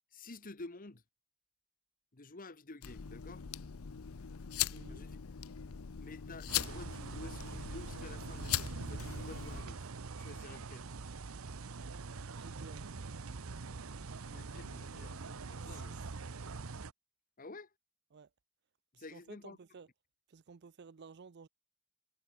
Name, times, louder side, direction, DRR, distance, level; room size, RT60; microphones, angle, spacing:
voice 1, 0.1-1.0 2.1-3.4 4.9-5.2 6.0-9.9 10.2-10.9 14.3-15.9 17.4-17.7 18.9-19.6, left 2 dB, 40° left, 1.3 m, -50 dB
sound 1, 2.8-9.6, left 10 dB, 80° left, 0.7 m, -40 dB
voice 2, 4.7-5.0 12.3-12.8 15.7-16.0 18.1-18.3 18.9-19.9 20.3-21.5, right 5 dB, 50° right, 0.5 m, -54 dB
sound 2, 6.5-16.9, right 4 dB, 75° right, 0.9 m, -44 dB
head